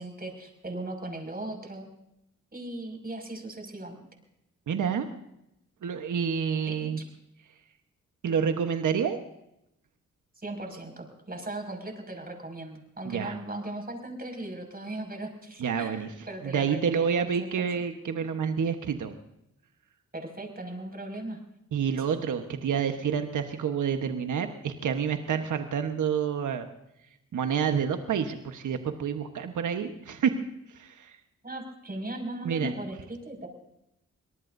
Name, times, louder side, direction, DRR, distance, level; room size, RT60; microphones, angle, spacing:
voice 1, 0.0-1.9 2.5-4.0 6.7-6.9 10.4-17.7 20.1-21.4 31.4-33.5, right 1 dB, 30° right, 4 dB, 6.0 m, -38 dB
voice 2, 4.7-5.1 5.8-7.0 8.2-9.2 13.0-13.4 15.6-16.1 16.4-19.1 21.7-26.7 27.3-30.3 30.7-31.2 32.4-32.7, right 7 dB, 70° right, 6 dB, 1.2 m, -28 dB
25.0 x 18.5 x 2.7 m, 0.83 s
supercardioid pair, 50°, 31 cm